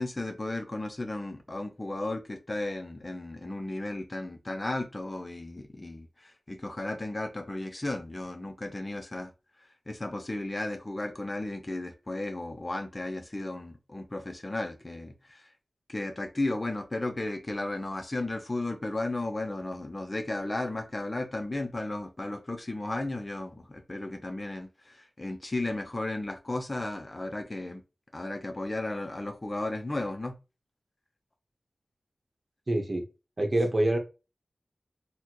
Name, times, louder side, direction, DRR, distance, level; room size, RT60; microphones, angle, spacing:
voice 1, 0.0-9.3 9.6-15.5 15.9-27.8 28.1-30.3, left 2 dB, 30° left, 0.5 m, -34 dB
voice 2, 32.7-33.0 33.4-34.0, right 1 dB, 45° right, 0.9 m, -25 dB
4.1 x 2.2 x 3.0 m
wide cardioid pair, 75°, 0 cm